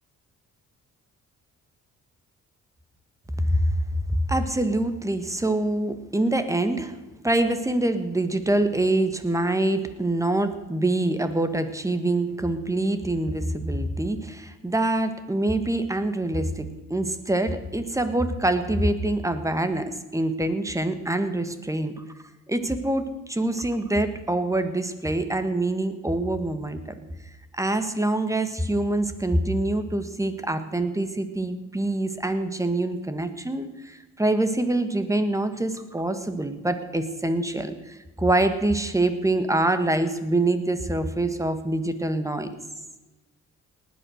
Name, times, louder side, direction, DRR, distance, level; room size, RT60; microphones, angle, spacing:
voice 1, 4.1-6.9 7.2-22.0 22.5-26.8 27.5-42.6, right 1 dB, 10° right, 10 dB, 1.5 m, -25 dB
19.0 x 8.5 x 6.4 m, 1.1 s
cardioid pair, 90°, 30 cm